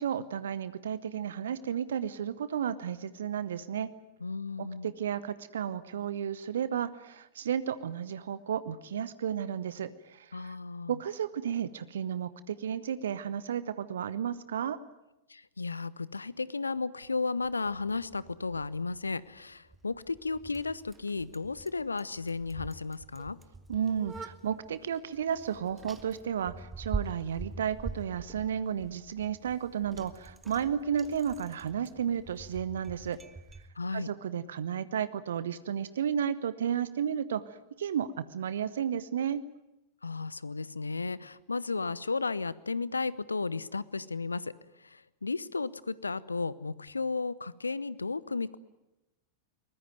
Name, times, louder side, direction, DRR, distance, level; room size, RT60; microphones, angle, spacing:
voice 1, 0.0-3.9 4.6-10.5 10.9-14.8 23.7-33.2 33.9-39.4, right 8 dB, 65° right, 15 dB, 0.9 m, -33 dB
voice 2, 4.2-4.9 10.3-11.0 15.3-23.4 33.8-34.1 40.0-44.5 44.8-48.6, left 4 dB, 80° left, 20 dB, 0.8 m, -34 dB
Bicycle, 17.4-33.7, right 3 dB, 15° right, 1.5 m, -45 dB
23.0 x 20.5 x 9.3 m, 0.94 s
figure-of-eight pair, 90°, 0 cm